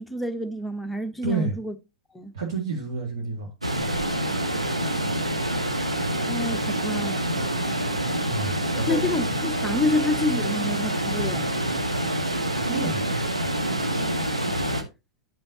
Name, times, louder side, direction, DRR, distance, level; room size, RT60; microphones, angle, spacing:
voice 1, 0.0-1.7 2.1-2.3 6.3-7.5 8.9-11.5, left 2 dB, 5° left, 0.8 m, -28 dB
voice 2, 1.2-1.5 2.3-3.5 8.2-9.0 12.5-13.0, right 3 dB, 60° right, 2.0 m, -29 dB
sound 1, 3.6-14.8, right 1 dB, 85° right, 1.0 m, -26 dB
10.0 x 5.5 x 2.8 m
figure-of-eight pair, 95°, 3 cm